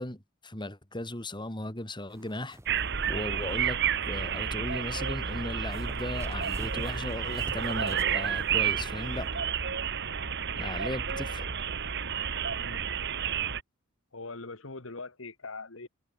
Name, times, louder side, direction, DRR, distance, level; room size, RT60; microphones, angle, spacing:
voice 1, 0.0-2.6 3.1-9.4 10.6-11.5, left 1 dB, 25° left, 3.3 m, -37 dB
sound 1, 2.1-9.3, right 1 dB, 15° right, 2.3 m, -50 dB
sound 2, 2.7-13.6, right 7 dB, 60° right, 1.9 m, -31 dB
voice 2, 14.1-15.9, left 3 dB, 70° left, 2.0 m, -42 dB
head